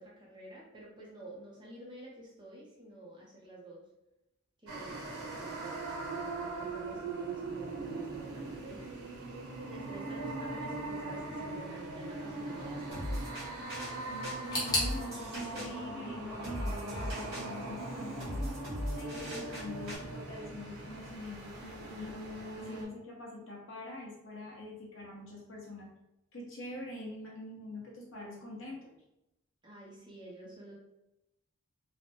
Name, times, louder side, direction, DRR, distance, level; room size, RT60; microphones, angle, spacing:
voice 1, 0.0-3.8 4.6-6.0 6.5-8.9 9.7-13.2 29.6-30.8, right 1 dB, 20° right, -4 dB, 0.6 m, -50 dB
sound 1, 4.7-22.9, right 2 dB, 90° right, 0.7 m, -40 dB
sound 2, 12.9-20.0, equal, 45° right, 1.3 m, -40 dB
voice 2, 14.1-18.4 19.0-22.1 22.6-25.9 26.3-28.9, left 1 dB, 60° left, -2 dB, 0.8 m, -44 dB
sound 3, 14.5-17.4 17.6-18.5 18.7-18.8 19.7-19.8, left 1 dB, 20° left, 0.8 m, -38 dB
3.2 x 2.1 x 2.7 m, 0.89 s
head